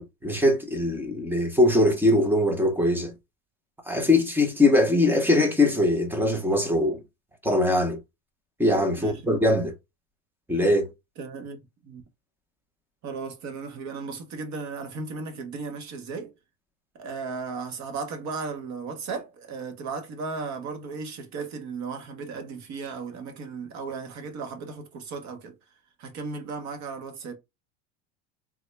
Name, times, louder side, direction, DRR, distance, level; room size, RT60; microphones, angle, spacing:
voice 1, 0.0-3.1 3.9-7.0 7.4-8.0 8.6-9.7 10.5-10.9, left 1 dB, 5° right, 0.6 m, -22 dB
voice 2, 11.2-12.0 13.0-16.3 16.9-25.5 26.0-27.3, right 4 dB, 45° right, 1.0 m, -35 dB
3.5 x 2.2 x 3.1 m
cardioid pair, 140°, 37 cm